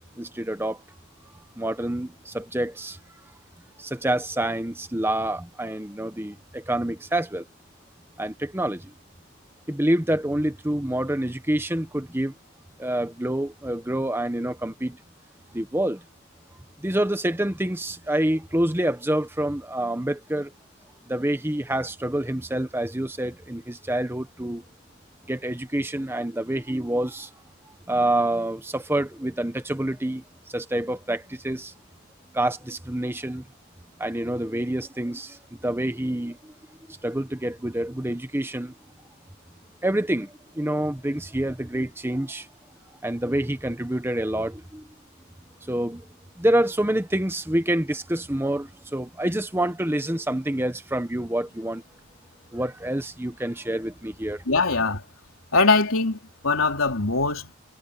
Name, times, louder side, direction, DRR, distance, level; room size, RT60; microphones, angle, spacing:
voice 1, 0.2-0.8 1.6-3.0 3.8-7.5 8.2-8.9 9.7-12.3 12.8-15.0 15.5-16.0 16.8-20.5 21.1-24.6 25.3-27.3 27.9-31.7 32.3-33.4 34.0-36.5 36.9-38.7 39.8-42.5 43.0-44.8 45.6-46.0 46.4-51.8 52.5-54.4, right 1 dB, 10° right, 0.9 m, -27 dB
voice 2, 54.5-55.0 55.5-56.2 56.4-57.5, left 3 dB, 75° left, 3.5 m, -21 dB
head